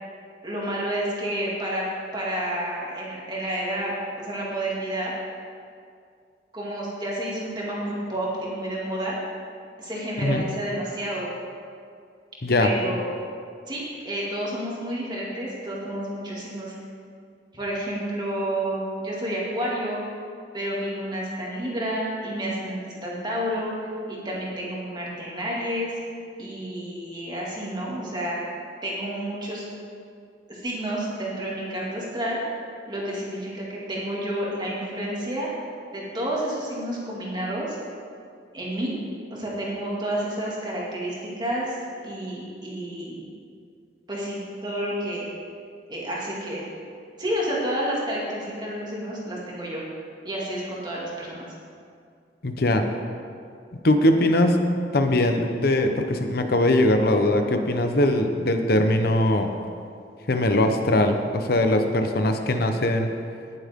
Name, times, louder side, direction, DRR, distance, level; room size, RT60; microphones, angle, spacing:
voice 1, 0.4-1.8 2.1-5.1 6.5-9.2 9.8-11.3 12.6-13.1 13.7-16.7 17.5-20.0 20.5-23.7 24.1-25.9 26.4-28.4 28.8-29.7 30.5-32.4 32.9-35.5 35.9-37.8 38.5-38.9 39.3-41.8 42.0-43.3 44.1-45.3 45.9-46.6 47.2-49.8 50.2-51.5, right 1 dB, 25° right, -5 dB, 2.4 m, -30 dB
voice 2, 52.4-52.9 53.8-54.6 54.9-59.5 60.3-63.1, left 1 dB, 60° left, 6 dB, 0.9 m, -21 dB
18.0 x 7.5 x 3.7 m, 2.3 s
head